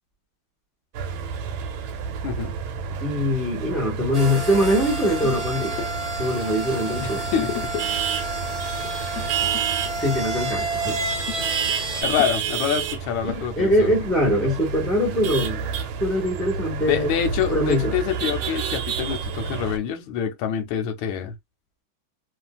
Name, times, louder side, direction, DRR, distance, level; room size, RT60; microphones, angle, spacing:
sound 1, 1.0-19.8, right 6 dB, 85° right, 1.4 m, -30 dB
voice 1, 3.0-5.8 6.2-7.2 10.0-11.0 13.2-15.7 16.0-17.1 17.5-17.9, equal, ahead, 1.1 m, -23 dB
sound 2, 4.1-12.0, right 2 dB, 35° right, 0.6 m, -30 dB
sound 3, 5.2-6.3 7.3-8.0 8.3-8.5 8.8-12.9, left 10 dB, 70° left, 1.2 m, -37 dB
voice 2, 7.0-7.5 12.0-13.9 16.9-21.3, left 8 dB, 90° left, 1.5 m, -26 dB
3.2 x 2.4 x 2.3 m
omnidirectional pair, 2.2 m